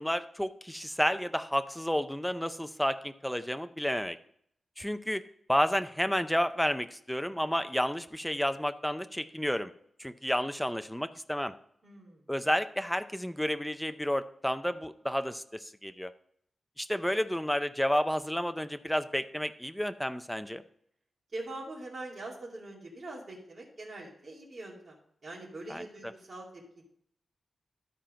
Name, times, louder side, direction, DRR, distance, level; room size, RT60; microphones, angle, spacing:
voice 1, 0.0-4.2 4.8-5.2 5.5-9.7 10.0-11.5 12.3-16.1 16.8-20.6 25.7-25.9, equal, 5° left, 10 dB, 0.4 m, -31 dB
voice 2, 11.8-12.3 21.3-26.8, right 2 dB, 40° right, -3 dB, 2.4 m, -43 dB
12.5 x 4.4 x 5.1 m, 0.68 s
wide cardioid pair, 165°, 0 cm